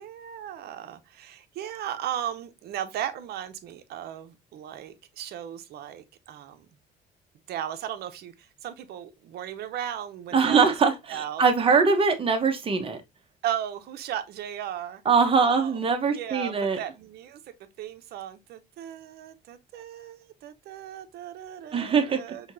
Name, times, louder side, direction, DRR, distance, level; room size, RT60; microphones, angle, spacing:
voice 1, 0.0-6.7 7.5-10.7 11.1-11.4 13.4-15.0 15.4-15.8 16.1-17.4 17.8-22.5, right 10 dB, 70° right, 0.7 m, -36 dB
voice 2, 10.3-13.0 15.0-16.8 21.7-22.2, right 5 dB, 30° right, 1.0 m, -22 dB
5.7 x 2.8 x 2.6 m
cardioid pair, 110°, 17 cm